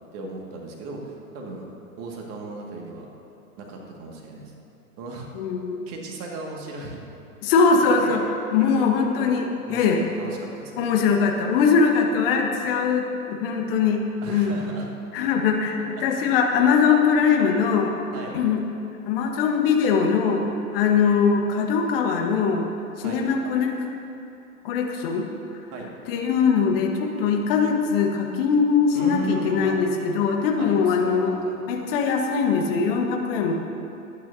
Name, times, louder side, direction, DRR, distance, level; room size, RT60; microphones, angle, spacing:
voice 1, 0.1-1.6 2.0-3.1 3.6-4.5 5.0-5.3 5.9-7.0 7.9-8.2 8.7-8.9 9.2-9.3 9.7-10.9 14.2-14.9 18.1-18.4 23.0-23.2 25.7-25.9 28.9-29.8 30.6-31.6, right 2 dB, 30° right, 0 dB, 2.0 m, -36 dB
voice 2, 5.3-5.9 7.4-8.2 8.5-10.0 10.8-14.5 15.1-17.9 18.3-18.6 19.1-20.4 20.7-22.6 23.0-23.7 24.6-25.3 26.1-31.3 31.7-33.5, left 5 dB, 40° left, 2 dB, 1.4 m, -21 dB
20.0 x 9.4 x 2.8 m, 2.8 s
figure-of-eight pair, 105°, 45 cm